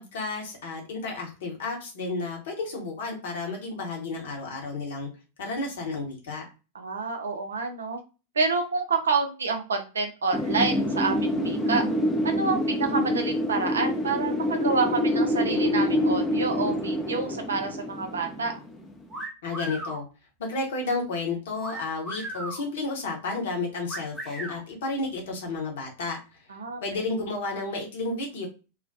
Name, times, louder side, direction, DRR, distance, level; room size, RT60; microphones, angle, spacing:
voice 1, 0.0-5.1 5.4-6.4 19.4-20.1 20.4-26.2 26.8-28.5, left 3 dB, 60° left, 0 dB, 0.9 m, -32 dB
voice 2, 6.7-8.0 8.4-11.9 12.2-18.5 26.5-26.8, right 4 dB, 70° right, 4 dB, 0.5 m, -28 dB
Wind, 10.3-19.0, left 1 dB, 15° left, 0.5 m, -26 dB
sound 1, 19.1-20.0 21.6-22.6 23.9-24.6, right 1 dB, 10° right, 0.9 m, -36 dB
2.3 x 2.1 x 2.6 m, 0.31 s
figure-of-eight pair, 90°, 0 cm